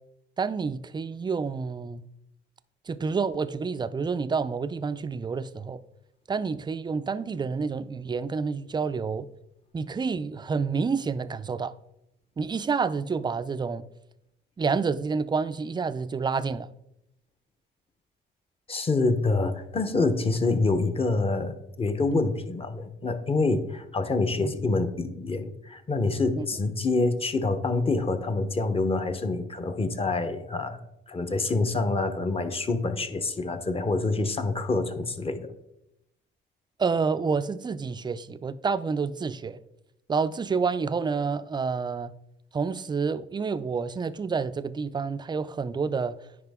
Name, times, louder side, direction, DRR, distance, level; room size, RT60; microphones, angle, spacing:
voice 1, 0.4-2.0 2.9-5.8 6.3-9.3 9.7-11.7 12.4-13.9 14.6-16.7 22.1-22.2 24.4-24.5 26.3-26.5 36.8-39.6 40.1-42.1 42.5-46.2, right 5 dB, 20° right, 0.4 m, -28 dB
voice 2, 18.7-30.8 31.1-35.5, left 3 dB, 30° left, 0.9 m, -26 dB
9.7 x 4.8 x 3.6 m
cardioid pair, 90°, 20 cm